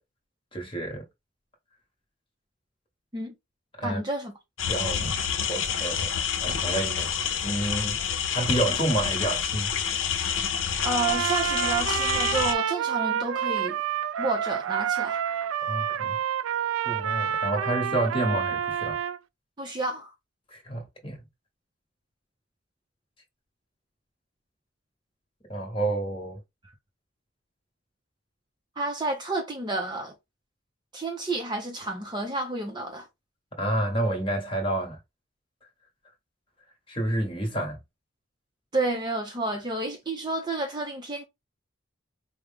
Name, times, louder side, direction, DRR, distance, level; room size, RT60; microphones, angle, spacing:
voice 1, 0.5-1.0 3.8-4.0 4.7-5.2 5.5-7.1 7.4-8.0 8.3-9.7 15.7-16.2 16.8-19.0 20.5-21.2 25.5-26.4 33.6-35.0 36.9-37.8, right 1 dB, 25° left, 1.1 m, -29 dB
voice 2, 3.8-4.3 10.8-13.8 14.2-15.2 19.6-20.1 28.8-30.1 30.9-33.1 38.7-41.2, right 2 dB, 20° right, 0.6 m, -30 dB
sound 1, 4.6-12.5, left 7 dB, 70° left, 0.7 m, -28 dB
Trumpet, 10.8-19.2, right 9 dB, 80° right, 0.3 m, -28 dB
4.6 x 2.1 x 3.4 m
head